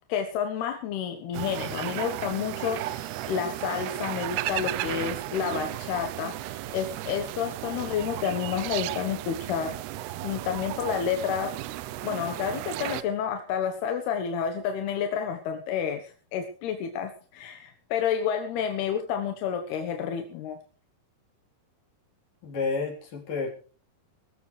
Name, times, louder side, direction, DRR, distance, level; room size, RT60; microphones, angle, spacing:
voice 1, 0.1-9.8 10.2-11.5 12.0-20.6, left 8 dB, 80° left, 6 dB, 3.4 m, -30 dB
sound 1, 1.3-13.0, right 15 dB, 85° right, 2.8 m, -34 dB
voice 2, 22.4-23.5, left 4 dB, 55° left, 1 dB, 5.4 m, -30 dB
21.5 x 14.0 x 3.3 m, 0.41 s
omnidirectional pair, 4.5 m